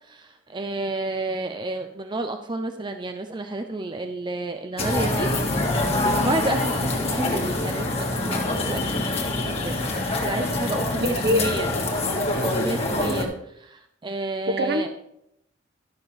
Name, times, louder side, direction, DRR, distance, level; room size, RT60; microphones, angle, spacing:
voice 1, 0.0-5.3 6.0-11.7 11.9-12.1 12.4-14.9, right 2 dB, 25° right, 6 dB, 0.5 m, -31 dB
sound 1, 4.8-13.2, left 2 dB, 35° left, 1.8 m, -25 dB
voice 2, 10.9-11.5 14.5-14.9, equal, 60° right, 7 dB, 1.1 m, -24 dB
12.5 x 6.7 x 4.3 m, 0.77 s
head